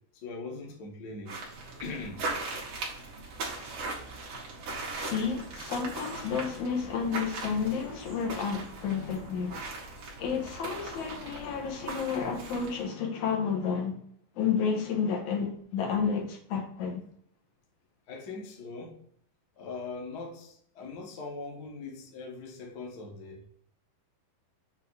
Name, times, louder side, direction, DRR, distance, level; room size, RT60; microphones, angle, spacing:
voice 1, 0.2-1.4 1.8-2.2 18.1-18.9 19.6-23.4, left 3 dB, 85° left, 0.8 m, -41 dB
sound 1, 1.3-12.8, right 3 dB, 55° right, 2.2 m, -39 dB
voice 2, 4.9-9.6 10.2-14.0 14.4-17.0, left 6 dB, 65° left, 2.3 m, -31 dB
6.9 x 2.9 x 4.6 m
omnidirectional pair, 4.0 m